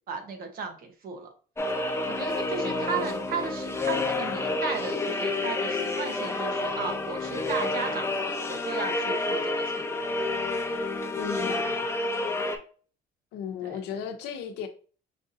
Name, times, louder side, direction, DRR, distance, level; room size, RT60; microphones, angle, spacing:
voice 1, 0.1-1.3 2.1-9.8 13.6-13.8, right 5 dB, 60° right, 1.0 m, -35 dB
sound 1, 1.6-12.6, left 2 dB, 15° left, 0.7 m, -29 dB
voice 2, 2.6-3.2 11.1-11.9 13.3-14.7, left 7 dB, 90° left, 0.7 m, -36 dB
5.7 x 2.6 x 2.6 m
cardioid pair, 110°, 17 cm